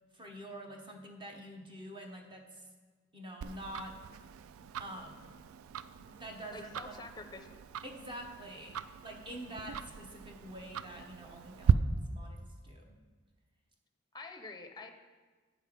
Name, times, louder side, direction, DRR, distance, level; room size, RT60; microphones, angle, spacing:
voice 1, 0.1-2.6 3.1-3.9 4.8-5.3 6.0-6.9 7.8-8.8 9.0-13.0, right 1 dB, 25° right, 2 dB, 1.0 m, -46 dB
Tick-tock, 3.4-11.7, right 7 dB, 75° right, 0.3 m, -37 dB
voice 2, 6.5-7.6 14.1-14.9, left 3 dB, 20° left, 6 dB, 0.6 m, -47 dB
8.9 x 5.5 x 4.9 m, 1.4 s
head